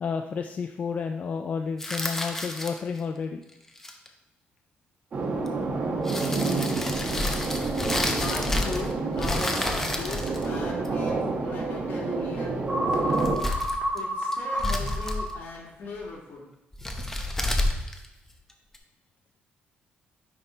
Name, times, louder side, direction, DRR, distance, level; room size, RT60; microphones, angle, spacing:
voice 1, 0.0-3.4 13.4-13.5, left 5 dB, 40° left, 5 dB, 0.3 m, -31 dB
Receipt Crinkle, 1.8-3.0 3.7-4.1 5.5-5.6 6.1-8.9 9.2-11.1 13.0-14.0 14.3-15.4 16.7-18.8, left 1 dB, 10° left, 0.7 m, -30 dB
sound 1, 5.1-13.4, right 3 dB, 45° right, 1.1 m, -29 dB
voice 2, 8.1-13.2 13.9-16.4, left 3 dB, 70° left, -4 dB, 2.3 m, -38 dB
sound 2, 12.7-15.2, equal, 15° right, 1.6 m, -28 dB
9.8 x 3.4 x 4.0 m, 0.89 s
cardioid pair, 135°, 4 cm